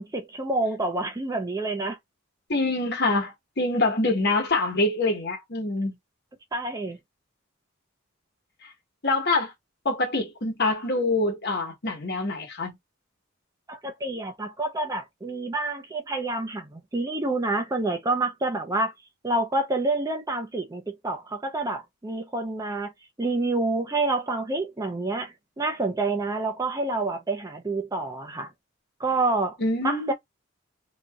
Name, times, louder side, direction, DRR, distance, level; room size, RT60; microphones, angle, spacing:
voice 1, 0.0-2.0 6.5-7.0 13.7-18.9 19.2-22.9 23.2-28.5 29.0-29.6 29.8-30.1, right 2 dB, 15° right, 0.5 m, -28 dB
voice 2, 2.5-6.0 9.0-9.5 9.8-12.8 29.6-30.1, left 2 dB, 55° left, 1.2 m, -25 dB
2.7 x 2.6 x 2.3 m
head